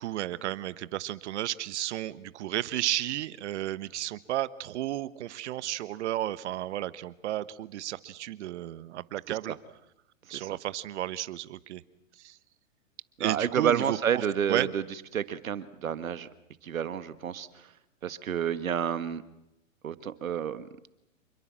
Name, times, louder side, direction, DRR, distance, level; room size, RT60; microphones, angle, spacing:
voice 1, 0.0-9.5 10.3-11.8 12.2-12.4 13.2-14.7, right 13 dB, 60° right, 15 dB, 1.3 m, -33 dB
voice 2, 13.2-14.8 15.1-16.3 16.6-17.7 18.0-19.2 19.8-20.7, right 8 dB, 85° right, 12 dB, 1.7 m, -30 dB
27.5 x 22.0 x 7.6 m, 0.86 s
hypercardioid pair, 135°, 40 cm